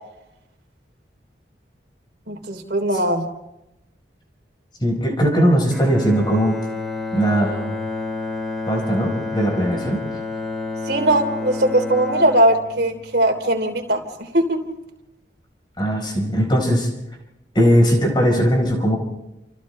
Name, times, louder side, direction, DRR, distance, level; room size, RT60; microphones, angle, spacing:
voice 1, 2.3-3.3 10.9-14.6, right 1 dB, 60° right, 4 dB, 3.2 m, -20 dB
voice 2, 4.8-6.6 7.1-7.7 8.7-10.0 15.8-16.9 17.5-19.0, equal, 25° left, 1 dB, 4.3 m, -19 dB
Bowed string instrument, 5.7-13.9, left 3 dB, ahead, 3.2 m, -30 dB
29.5 x 28.0 x 3.3 m, 0.91 s
head